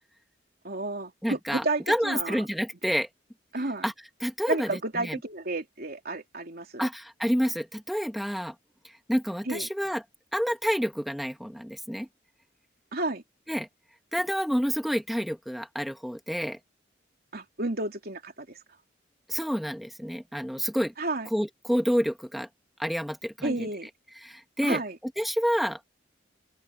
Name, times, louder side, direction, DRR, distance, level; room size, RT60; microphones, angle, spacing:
voice 1, 0.6-2.4 3.5-3.9 4.5-6.9 9.4-9.7 12.9-13.2 17.3-18.6 21.0-21.3 23.4-23.9 24.6-25.0, right 2 dB, 55° right, 3.3 m, -31 dB
voice 2, 1.2-3.1 3.8-3.9 4.2-5.2 6.8-8.5 9.1-10.0 10.3-12.1 13.5-13.7 14.1-16.6 19.3-20.9 21.3-22.5 22.8-23.7 24.2-24.8 25.2-25.8, equal, ahead, 1.7 m, -28 dB
open air
head